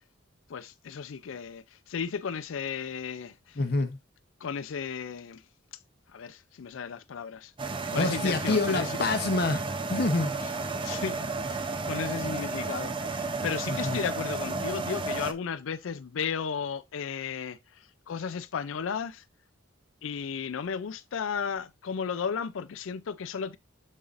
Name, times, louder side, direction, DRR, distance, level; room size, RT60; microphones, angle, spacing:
voice 1, 0.5-3.6 4.4-5.4 6.1-9.0 10.8-19.2 20.0-23.6, left 6 dB, 75° left, 0.4 m, -34 dB
voice 2, 3.6-4.0 8.0-10.3 13.7-14.0, left 3 dB, 50° left, 0.8 m, -27 dB
Coffeemaker making coffee and spilling it, 7.6-15.3, right 3 dB, 25° right, 0.6 m, -32 dB
6.9 x 5.5 x 2.5 m
head